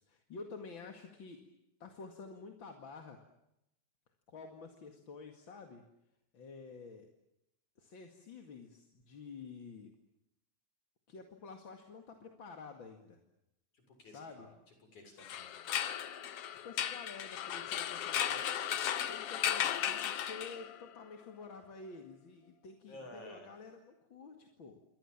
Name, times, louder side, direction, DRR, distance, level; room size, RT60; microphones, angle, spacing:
voice 1, 0.0-1.4 1.8-3.2 4.3-5.8 6.3-7.1 7.8-9.9 11.1-13.2 14.0-14.5 16.5-18.4 19.1-24.8, left 4 dB, 45° left, 4 dB, 2.7 m, -50 dB
voice 2, 13.7-14.5 14.9-15.7 22.9-23.5, left 1 dB, 90° left, 5 dB, 8.4 m, -53 dB
sound 1, 15.2-20.9, left 10 dB, 60° left, 2.0 m, -36 dB
28.0 x 24.5 x 7.3 m, 0.85 s
omnidirectional pair, 3.4 m